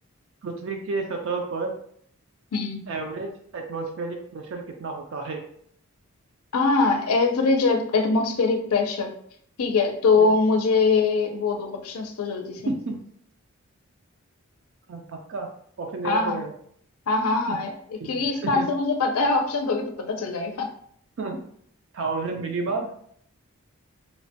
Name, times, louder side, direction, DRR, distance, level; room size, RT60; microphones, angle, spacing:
voice 1, 0.4-1.7 2.9-5.4 10.2-10.3 12.7-13.0 14.9-15.5 15.8-16.5 17.5-17.6 18.0-18.7 21.2-21.4 21.9-22.9, right 3 dB, 60° right, 2 dB, 0.4 m, -31 dB
voice 2, 6.5-9.1 9.6-12.7 16.0-16.4 17.1-17.7 18.0-20.7, left 3 dB, 80° left, 4 dB, 0.5 m, -23 dB
3.1 x 2.2 x 2.7 m, 0.64 s
head